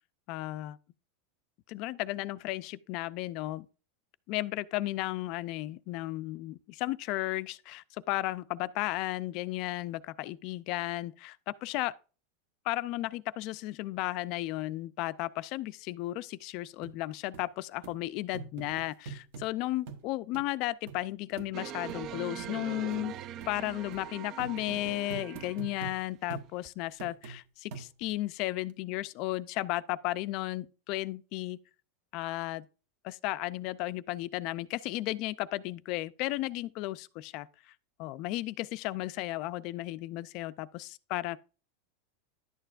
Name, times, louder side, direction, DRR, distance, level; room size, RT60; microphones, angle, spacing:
voice 1, 0.3-0.8 1.7-3.7 4.3-11.9 12.6-23.2 23.5-31.6 32.1-32.7 33.0-37.7 38.0-41.4, left 17 dB, 50° left, 0.4 m, -34 dB
sound 1, 16.8-16.9 17.3-17.4 17.8-18.0 18.3-19.5 19.9-20.0 20.3-20.4 20.9-21.0 21.4-21.5 21.9-22.0 22.4-22.5 22.9-23.0 23.4-23.5 23.9-24.0 24.4-26.0 26.3-26.5 27.0-27.4 27.7-28.2 28.7-28.8, right 6 dB, 65° right, 1.1 m, -43 dB
sound 2, 21.5-25.9 26.6-26.7, right 10 dB, 40° right, 0.3 m, -42 dB
11.0 x 6.8 x 2.4 m
supercardioid pair, 145°, 0 cm